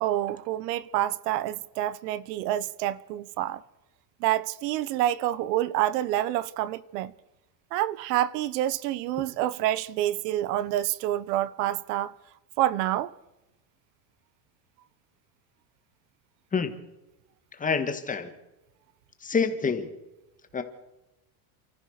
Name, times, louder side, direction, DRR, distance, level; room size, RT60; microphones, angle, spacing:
voice 1, 0.0-3.6 4.2-7.1 7.7-12.1 12.6-13.1, right 13 dB, 75° right, 1.0 m, -27 dB
voice 2, 17.5-18.3 19.2-19.9 20.5-20.6, left 5 dB, 15° left, 1.7 m, -27 dB
29.0 x 14.5 x 6.6 m
cardioid pair, 155°, 48 cm